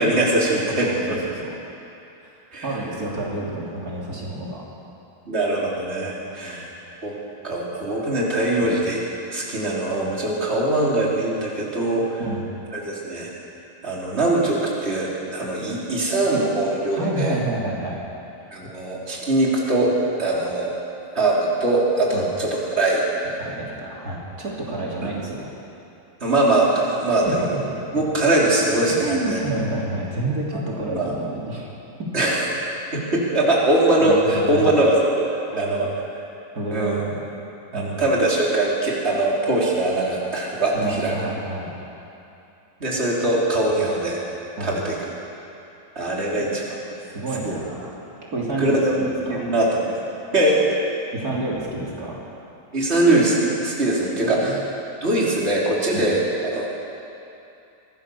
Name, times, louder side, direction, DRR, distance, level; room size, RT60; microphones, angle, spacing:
voice 1, 0.0-1.2 2.5-2.7 5.3-6.7 7.0-7.2 7.4-9.0 9.3-12.2 12.7-13.3 13.8-17.4 18.5-19.9 20.2-20.7 21.2-23.0 25.0-25.1 26.2-27.5 27.9-29.4 31.0-31.1 32.1-32.5 32.9-35.9 36.7-37.0 37.7-41.1 42.8-44.2 44.6-44.9 46.0-46.6 47.5-47.6 48.6-50.0 50.3-50.6 52.7-54.6 55.0-56.7, right 2 dB, 45° right, -4 dB, 3.8 m, -21 dB
voice 2, 0.8-1.5 2.2-4.6 6.2-6.7 8.6-8.7 12.2-12.5 16.9-18.0 20.2-20.4 22.1-22.3 23.4-25.5 27.4-27.6 28.9-31.7 32.0-32.1 34.0-34.8 35.5-35.9 36.6-37.2 37.7-38.0 40.7-41.7 44.6-44.8 46.1-46.6 47.1-47.9 48.3-48.8 49.3-49.5 51.1-52.2 54.2-54.6 55.9-56.1, right 2 dB, 80° right, -4 dB, 3.7 m, -29 dB
24.0 x 17.0 x 7.0 m, 2.8 s
omnidirectional pair, 1.6 m